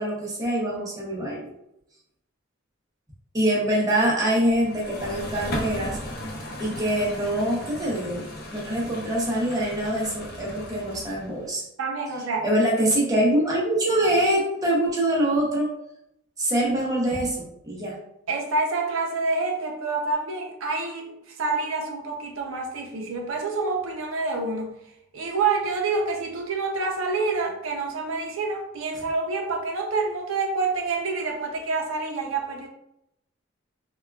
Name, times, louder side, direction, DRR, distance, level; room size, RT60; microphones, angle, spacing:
voice 1, 0.0-1.5 3.3-6.0 6.6-8.2 8.5-11.6 12.4-15.7 16.4-18.0, right 1 dB, 15° right, -4 dB, 0.6 m, -24 dB
sound 1, 4.5-11.5, left 1 dB, 50° left, 0.5 m, -36 dB
voice 2, 11.8-12.5 18.3-24.7 25.1-32.7, right 3 dB, 85° right, 2 dB, 0.5 m, -27 dB
3.5 x 2.2 x 2.2 m, 0.82 s
head